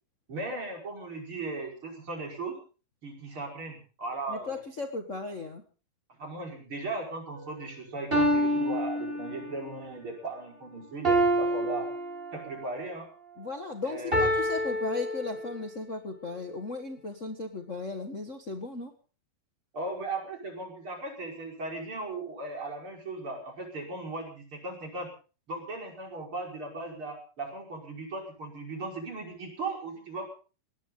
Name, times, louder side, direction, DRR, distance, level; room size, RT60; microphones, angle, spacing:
voice 1, 0.3-2.6 3.0-4.6 6.2-11.9 12.3-13.1 13.8-14.3 19.7-25.1 25.5-30.3, right 2 dB, 35° right, 0 dB, 6.0 m, -37 dB
voice 2, 4.3-5.6 13.4-18.9, left 3 dB, 60° left, 4 dB, 0.7 m, -36 dB
sound 1, 7.4-7.5 8.1-9.7 11.0-12.7 14.1-15.7, equal, 15° right, 4.8 m, -27 dB
20.0 x 18.0 x 3.9 m, 0.37 s
omnidirectional pair, 4.4 m